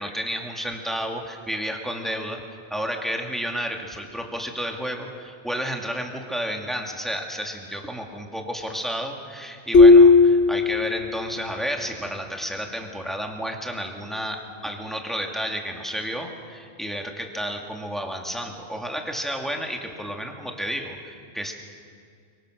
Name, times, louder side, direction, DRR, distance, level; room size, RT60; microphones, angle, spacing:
voice 1, 0.0-2.4 2.7-21.5, equal, ahead, 2 dB, 2.2 m, -31 dB
sound 1, 9.7-11.4, left 3 dB, 55° left, 1.4 m, -14 dB
24.0 x 23.5 x 6.5 m, 2.2 s
omnidirectional pair, 1.4 m